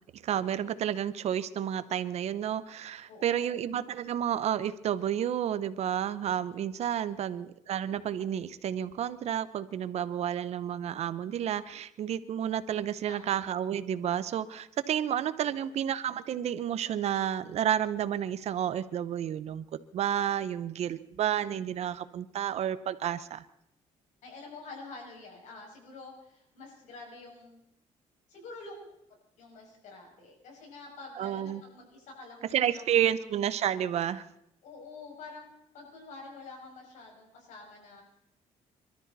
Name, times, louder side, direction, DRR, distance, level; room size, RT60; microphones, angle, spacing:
voice 1, 0.1-19.7 19.9-23.4 31.2-31.6 32.5-34.3, right 10 dB, 60° right, 15 dB, 0.9 m, -31 dB
voice 2, 3.1-3.6 13.1-13.5 15.5-15.8 24.2-27.6 28.3-28.9 29.4-33.3 34.6-35.5 35.7-38.0, left 3 dB, 85° left, 0 dB, 6.3 m, -48 dB
26.0 x 13.0 x 4.1 m, 0.78 s
cardioid pair, 115°, 12 cm